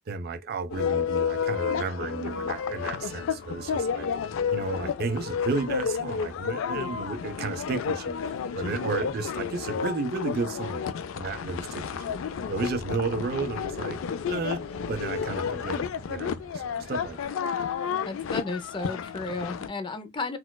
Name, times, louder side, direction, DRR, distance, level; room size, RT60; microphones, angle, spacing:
voice 1, 0.1-4.1 4.5-8.2 8.5-10.9 11.1-12.2 12.5-17.4, right 4 dB, 50° right, 0.3 m, -33 dB
sound 1, 0.7-19.7, left 7 dB, 85° left, 0.3 m, -31 dB
Piano, 2.4-8.5, left 1 dB, 65° left, 0.9 m, -53 dB
sound 2, 11.1-17.2, right 1 dB, 15° right, 1.9 m, -47 dB
voice 2, 18.0-20.4, left 3 dB, 25° left, 0.5 m, -33 dB
4.1 x 2.2 x 2.2 m
head